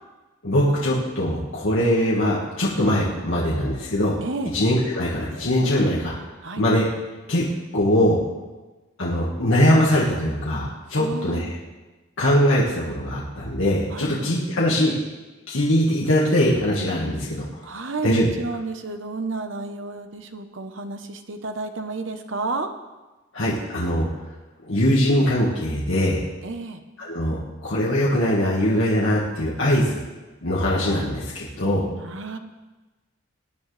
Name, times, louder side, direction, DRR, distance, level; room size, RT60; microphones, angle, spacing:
voice 1, 0.4-4.2 4.5-6.1 6.6-6.9 7.3-7.4 7.7-8.2 9.0-11.6 12.2-15.1 15.5-17.5 18.0-18.3 23.3-24.1 24.6-26.2 27.0-30.0 30.4-31.9, equal, 70° left, -5 dB, 1.8 m, -21 dB
voice 2, 4.2-4.6 6.4-6.7 11.0-11.6 13.9-14.3 17.6-22.7 26.4-26.8 32.0-32.4, right 3 dB, 60° right, 7 dB, 1.0 m, -31 dB
20.0 x 9.4 x 3.4 m, 1.2 s
head